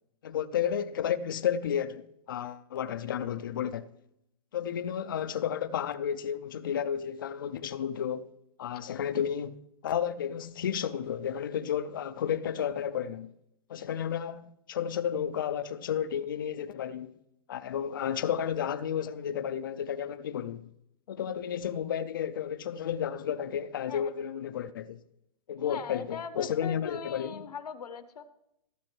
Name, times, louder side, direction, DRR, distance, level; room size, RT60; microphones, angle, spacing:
voice 1, 0.2-3.9 4.5-8.3 8.6-13.3 13.7-17.2 17.5-20.7 21.1-25.0 25.5-27.4, left 9 dB, 35° left, 0.4 m, -32 dB
voice 2, 25.6-28.3, left 6 dB, 85° left, 1.2 m, -40 dB
16.5 x 8.3 x 3.2 m
hypercardioid pair, 170°, 20 cm